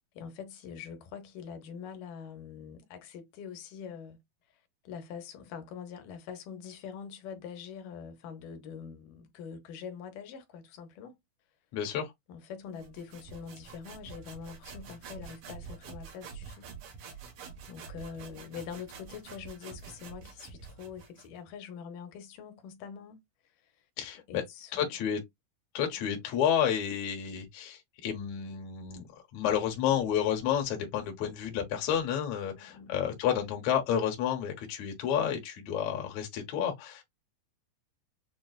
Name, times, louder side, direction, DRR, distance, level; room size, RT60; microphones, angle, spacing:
voice 1, 0.1-4.2 4.8-11.2 12.3-16.7 17.7-23.2 24.3-24.9 26.0-26.2 32.5-33.1, left 7 dB, 80° left, 2.5 m, -44 dB
voice 2, 11.7-12.1 24.0-24.4 24.7-25.2 25.7-29.0 29.3-37.0, left 9 dB, 65° left, 2.1 m, -30 dB
sound 1, 12.8-21.4, right 5 dB, 70° right, 2.7 m, -47 dB
6.7 x 2.3 x 2.3 m
omnidirectional pair, 3.7 m